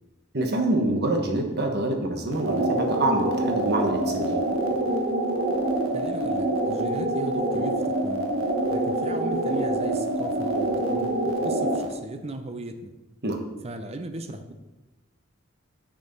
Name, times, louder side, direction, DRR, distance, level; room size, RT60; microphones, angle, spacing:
voice 1, 0.3-4.4 13.2-13.4, right 2 dB, 50° right, 3 dB, 1.2 m, -26 dB
sound 1, 2.3-11.9, right 1 dB, 75° right, 1.2 m, -26 dB
voice 2, 5.9-8.3 8.7-12.9 13.6-14.5, right 2 dB, 30° right, 8 dB, 0.5 m, -37 dB
6.7 x 6.5 x 5.3 m, 1.1 s
head